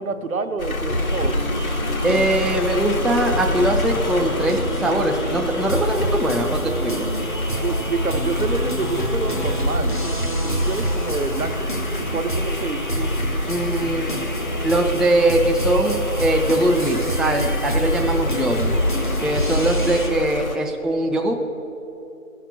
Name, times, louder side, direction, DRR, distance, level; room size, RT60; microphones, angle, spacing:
voice 1, 0.0-1.4 7.6-10.0 10.4-11.7 12.1-13.1, right 4 dB, 75° right, 7 dB, 0.9 m, -27 dB
sound 1, 0.6-20.6, left 2 dB, 80° left, 1.2 m, -30 dB
sound 2, 0.9-20.1, equal, 35° left, 0.6 m, -26 dB
voice 2, 2.0-7.1 13.5-14.2 14.6-18.8 19.2-21.3, right 1 dB, ahead, 1 dB, 0.3 m, -21 dB
12.5 x 5.7 x 6.6 m, 3.0 s
figure-of-eight pair, 165°, 42 cm